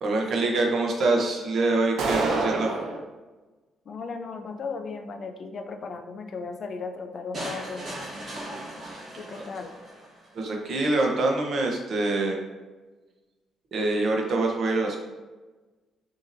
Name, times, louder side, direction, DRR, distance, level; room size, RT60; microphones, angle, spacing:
voice 1, 0.0-2.7 10.3-12.4 13.7-15.0, right 2 dB, 45° right, 0 dB, 0.8 m, -25 dB
sound 1, 2.0-3.0, right 3 dB, 75° right, 0.6 m, -26 dB
voice 2, 3.9-7.9 9.2-9.7, left 4 dB, 40° left, 6 dB, 0.4 m, -36 dB
sound 2, 7.3-10.3, right 1 dB, 25° right, 1.4 m, -38 dB
6.0 x 2.8 x 2.6 m, 1.2 s
cardioid pair, 175°, 0 cm